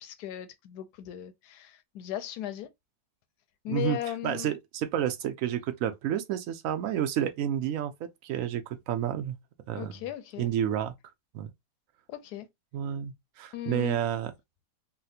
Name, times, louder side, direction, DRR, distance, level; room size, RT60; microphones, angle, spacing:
voice 1, 0.0-2.7 3.6-4.5 9.7-10.5 12.1-12.5 13.5-14.0, left 12 dB, 75° left, 1.0 m, -37 dB
voice 2, 3.7-4.0 4.2-7.9 8.2-9.4 9.7-10.0 10.4-10.9 11.3-11.5 12.7-14.3, right 10 dB, 75° right, 0.7 m, -30 dB
4.1 x 2.1 x 2.7 m
omnidirectional pair, 1.9 m